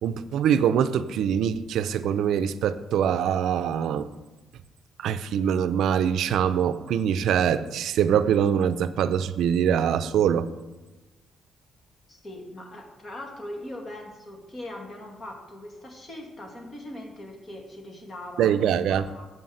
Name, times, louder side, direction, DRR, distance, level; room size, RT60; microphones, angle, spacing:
voice 1, 0.0-4.1 5.0-10.5 18.4-19.1, right 8 dB, 80° right, 12 dB, 0.4 m, -23 dB
voice 2, 12.1-19.3, left 1 dB, 35° left, 1 dB, 2.1 m, -40 dB
7.8 x 5.5 x 7.7 m, 1.1 s
cardioid pair, 90°, 0 cm